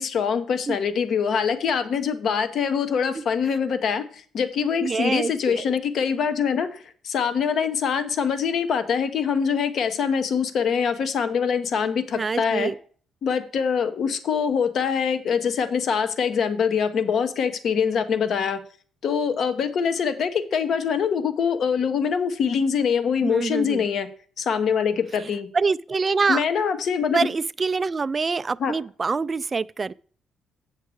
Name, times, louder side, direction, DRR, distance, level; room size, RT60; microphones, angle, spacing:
voice 1, 0.0-12.7 13.2-18.6 19.0-24.1 24.4-25.5 26.3-27.3 28.6-28.7, left 6 dB, 65° left, 0.9 m, -24 dB
voice 2, 4.8-5.7 12.1-12.7 23.2-23.8 25.5-26.4 27.1-29.9, right 4 dB, 30° right, 0.3 m, -25 dB
8.1 x 6.5 x 4.7 m
cardioid pair, 90°, 0 cm